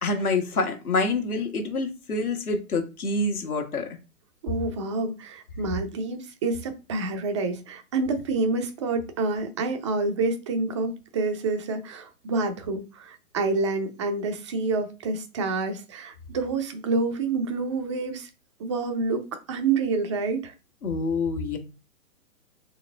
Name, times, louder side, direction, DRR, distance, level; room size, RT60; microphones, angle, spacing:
voice 1, 0.0-3.9 20.8-21.6, left 3 dB, 80° left, 3 dB, 1.4 m, -26 dB
voice 2, 4.4-18.3 18.6-20.5, right 3 dB, 20° right, 6 dB, 0.5 m, -28 dB
4.2 x 3.1 x 3.3 m, 0.30 s
figure-of-eight pair, 125°, 44 cm